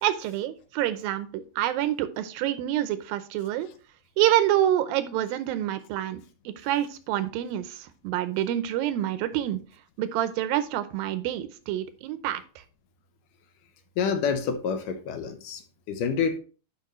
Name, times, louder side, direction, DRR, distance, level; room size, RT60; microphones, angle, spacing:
voice 1, 0.0-3.7 4.2-9.6 10.0-12.6, right 12 dB, 90° right, 2.5 m, -27 dB
voice 2, 14.0-15.6 15.9-16.4, left 6 dB, 75° left, 2.3 m, -27 dB
11.0 x 5.4 x 3.1 m
omnidirectional pair, 4.1 m